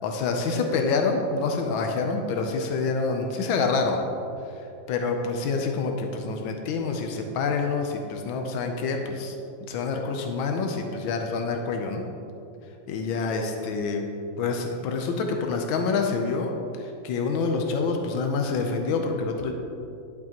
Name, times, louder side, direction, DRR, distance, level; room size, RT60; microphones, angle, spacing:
voice 1, 0.0-4.0 4.9-9.3 9.7-12.0 12.9-14.1 14.4-16.5 16.8-19.5, left 4 dB, 90° left, 3 dB, 1.5 m, -27 dB
11.0 x 6.1 x 2.9 m, 2.6 s
omnidirectional pair, 2.1 m